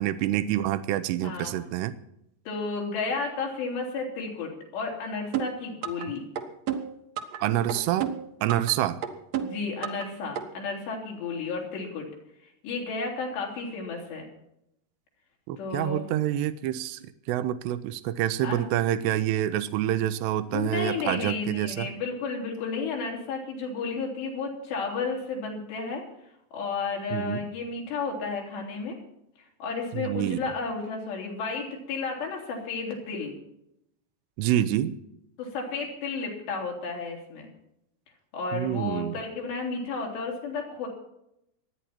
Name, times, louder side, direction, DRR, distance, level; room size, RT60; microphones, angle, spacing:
voice 1, 0.0-1.9 7.4-8.1 8.4-9.0 15.5-17.0 17.3-21.9 27.1-27.4 29.9-30.4 34.4-35.0 38.5-39.2, right 12 dB, 85° right, 12 dB, 2.9 m, -27 dB
voice 2, 1.2-1.6 2.5-6.3 9.4-12.1 12.6-14.3 15.6-16.1 18.4-18.6 20.5-26.0 26.5-29.0 29.6-33.3 35.4-37.5 38.3-40.9, left 4 dB, 80° left, 0 dB, 5.6 m, -32 dB
sound 1, 5.3-6.1 6.4-7.4 7.7-8.7 9.0-10.1 10.4-10.5, right 9 dB, 65° right, 1.7 m, -30 dB
25.0 x 10.0 x 4.4 m, 0.80 s
omnidirectional pair, 4.8 m